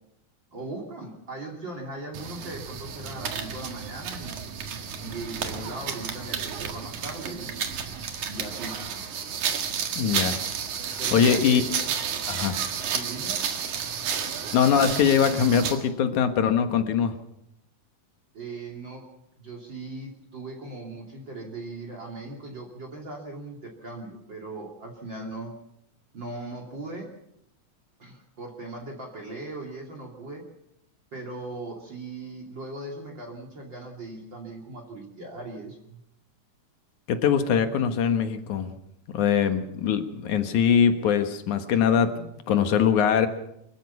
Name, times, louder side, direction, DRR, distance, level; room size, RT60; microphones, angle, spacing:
voice 1, 0.5-4.3 5.0-7.5 8.3-8.8 11.0-11.7 12.9-13.4 18.3-19.1 19.4-25.6 26.1-27.1 28.0-30.4 31.1-36.0, right 2 dB, 40° right, 0 dB, 3.4 m, -39 dB
sound 1, 2.1-15.9, right 7 dB, 85° right, 3.3 m, -31 dB
voice 2, 10.0-10.4 10.8-11.6 12.3-12.6 14.5-17.1 37.1-38.7 39.1-43.3, left 7 dB, 80° left, 8 dB, 2.9 m, -22 dB
25.0 x 15.0 x 7.1 m, 0.80 s
omnidirectional pair, 3.4 m